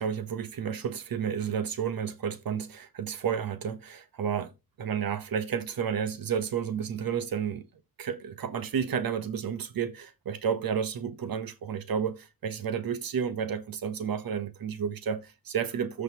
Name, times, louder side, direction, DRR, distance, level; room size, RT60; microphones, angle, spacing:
voice 1, 0.0-4.5 4.8-7.7 8.0-16.0, right 7 dB, 85° right, 1.0 m, -31 dB
14.0 x 5.1 x 2.9 m
wide cardioid pair, 165°, 34 cm